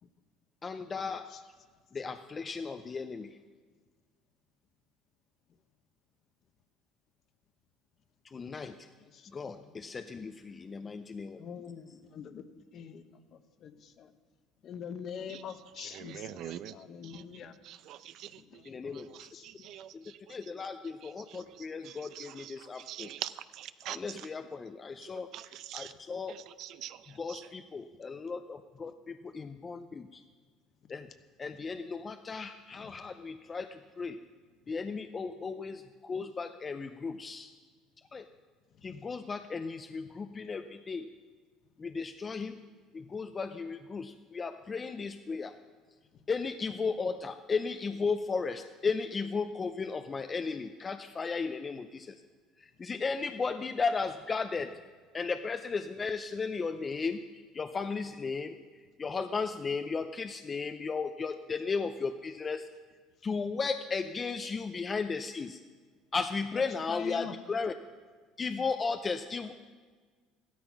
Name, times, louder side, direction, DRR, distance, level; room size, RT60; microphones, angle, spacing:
voice 1, 0.6-1.5 1.9-3.4 8.2-8.8 9.3-11.4 18.7-19.1 19.9-20.0 20.3-23.1 23.9-25.3 25.7-26.3 27.2-30.2 30.9-31.1 31.4-34.2 34.7-37.5 38.1-38.3 38.8-41.1 41.8-42.6 42.9-45.6 46.3-52.2 52.6-54.7 55.1-58.6 59.0-62.7 63.2-65.6 66.1-67.7 68.4-69.5, left 4 dB, 25° left, 8 dB, 0.5 m, -35 dB
voice 2, 9.6-10.0 11.4-12.4 12.7-12.9 13.6-13.7 14.0-14.1 14.6-16.3 16.7-17.5 18.5-18.9 19.3-19.7 30.8-30.9 32.8-32.9 66.5-67.3, left 7 dB, 45° left, 10 dB, 1.0 m, -44 dB
voice 3, 15.3-24.3 25.0-25.9 26.3-27.5, right 12 dB, 60° right, 14 dB, 0.6 m, -46 dB
14.5 x 12.5 x 5.9 m, 1.5 s
cardioid pair, 130°, 0 cm